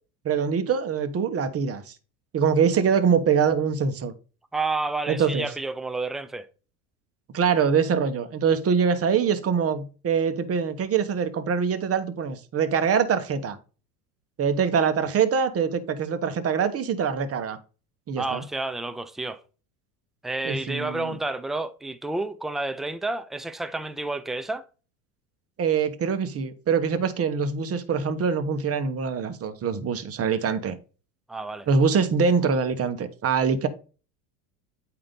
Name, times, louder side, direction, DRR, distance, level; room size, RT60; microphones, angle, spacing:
voice 1, 0.2-1.9 2.3-4.1 5.1-5.5 7.3-13.6 14.4-17.6 18.1-18.4 20.4-21.1 25.6-30.7 31.7-33.7, right 6 dB, 30° right, 1.1 m, -24 dB
voice 2, 4.5-6.5 18.2-19.4 20.2-24.7 31.3-31.7, right 2 dB, ahead, 0.3 m, -30 dB
8.7 x 2.9 x 5.1 m
hypercardioid pair, 85°, 46 cm